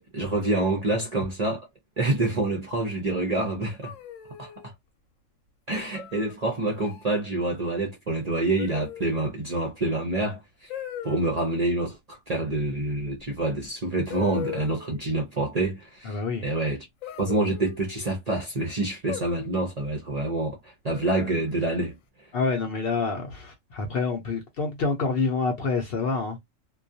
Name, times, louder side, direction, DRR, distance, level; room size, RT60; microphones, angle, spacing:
voice 1, 0.0-1.7 2.0-3.9 4.4-4.7 5.7-10.7 11.0-16.9 17.2-22.3, right 2 dB, 45° right, 0.5 m, -27 dB
sound 1, 3.8-4.7 5.9-6.3 6.8-7.2 8.6-9.2 10.7-11.3 13.2-13.3 14.1-15.1 17.0-18.1 19.1-19.7 20.9-21.5, left 10 dB, 80° left, 1.0 m, -39 dB
voice 2, 16.0-16.5 22.3-26.4, left 4 dB, 60° left, 0.7 m, -27 dB
2.3 x 2.2 x 2.6 m
omnidirectional pair, 1.3 m